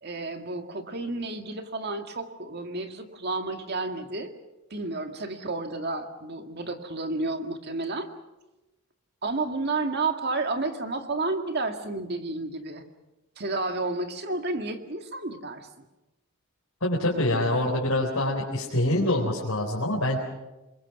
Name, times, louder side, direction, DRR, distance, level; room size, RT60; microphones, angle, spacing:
voice 1, 0.0-4.3 4.7-8.1 9.2-12.8 13.4-15.7, right 3 dB, 50° right, 6 dB, 2.0 m, -31 dB
voice 2, 16.8-20.2, left 1 dB, 75° left, -3 dB, 4.2 m, -25 dB
28.0 x 22.0 x 6.1 m, 1.0 s
head